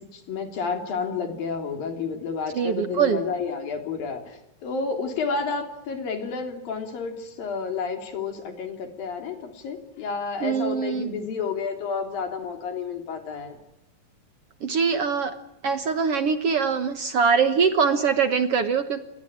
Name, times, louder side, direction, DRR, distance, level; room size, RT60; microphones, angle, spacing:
voice 1, 0.0-13.6, left 5 dB, 90° left, 5 dB, 5.0 m, -31 dB
voice 2, 2.5-3.2 10.4-11.1 14.6-15.4 15.6-19.0, right 6 dB, 55° right, 9 dB, 1.7 m, -23 dB
29.5 x 22.5 x 8.9 m, 0.85 s
omnidirectional pair, 3.9 m